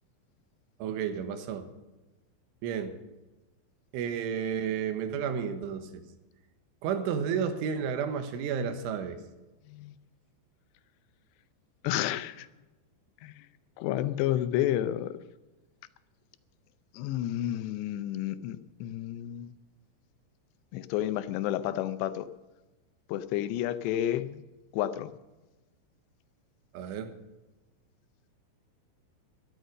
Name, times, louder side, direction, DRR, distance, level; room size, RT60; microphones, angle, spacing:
voice 1, 0.8-1.7 2.6-2.9 3.9-6.0 6.8-9.2 26.7-27.1, right 7 dB, 85° right, 8 dB, 3.7 m, -31 dB
voice 2, 11.8-12.5 13.2-13.5 13.8-15.2 16.9-19.5 20.7-22.3 23.1-24.4 24.7-25.1, left 12 dB, 80° left, 13 dB, 2.6 m, -31 dB
13.0 x 13.0 x 6.5 m, 1.1 s
omnidirectional pair, 5.5 m